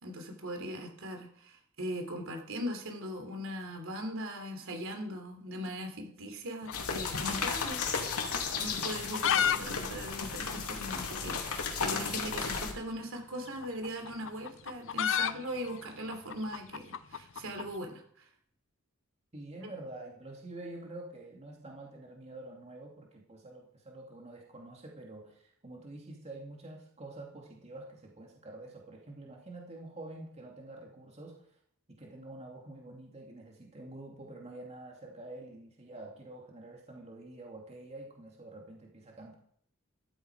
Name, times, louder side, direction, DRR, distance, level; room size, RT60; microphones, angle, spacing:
voice 1, 0.0-7.8 8.1-18.3 19.6-19.7, equal, 65° right, 4 dB, 3.5 m, -40 dB
sound 1, 6.6-8.3 8.9-9.6 9.8-9.9 10.2-10.3 10.9-11.0 12.2-12.3 13.5-17.7, left 9 dB, 60° left, 0.6 m, -32 dB
sound 2, 6.7-12.7, left 5 dB, 90° left, 2.6 m, -34 dB
voice 2, 19.3-31.6 31.9-39.4, right 2 dB, 30° right, 0 dB, 2.5 m, -47 dB
14.0 x 13.5 x 4.9 m, 0.64 s
head